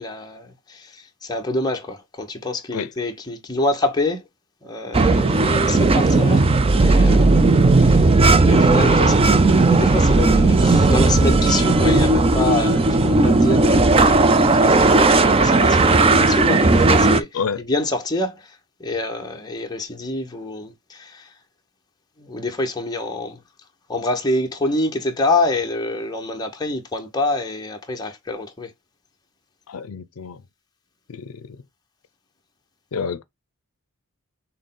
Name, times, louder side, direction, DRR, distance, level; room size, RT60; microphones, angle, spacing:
voice 1, 0.0-4.3 4.6-7.4 7.8-8.2 8.5-21.3 22.2-23.4 23.9-28.7, left 2 dB, 20° left, 0.9 m, -26 dB
sound 1, 4.9-17.2, right 3 dB, 25° right, 0.4 m, -15 dB
voice 2, 29.7-30.4 31.1-31.6 32.9-33.2, left 6 dB, 75° left, 0.5 m, -29 dB
6.3 x 2.2 x 3.7 m
head